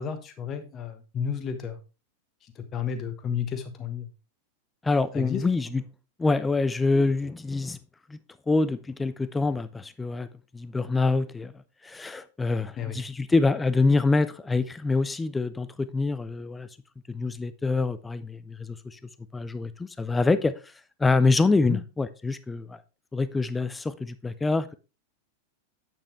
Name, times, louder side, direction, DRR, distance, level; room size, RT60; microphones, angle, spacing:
voice 1, 0.0-1.8 2.6-4.1 5.1-5.4 12.8-13.0 21.7-21.8, left 7 dB, 30° left, 1.3 m, -32 dB
voice 2, 4.8-5.8 6.2-7.8 8.1-8.2 8.5-10.3 10.5-11.5 11.8-16.7 17.1-19.0 19.3-20.7 21.0-22.8 23.1-24.7, left 3 dB, 10° left, 0.5 m, -25 dB
8.7 x 7.4 x 3.2 m
figure-of-eight pair, 90°, 0 cm